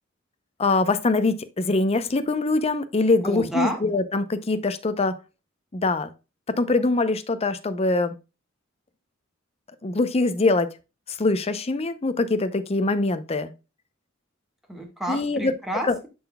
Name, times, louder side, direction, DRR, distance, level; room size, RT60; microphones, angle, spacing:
voice 1, 0.6-5.2 5.7-6.1 6.5-8.2 9.8-10.7 11.1-13.5 15.1-15.5 15.8-16.0, left 3 dB, 30° left, 0.6 m, -23 dB
voice 2, 3.2-3.8 14.7-16.1, equal, ahead, 1.5 m, -30 dB
11.0 x 3.9 x 2.2 m
head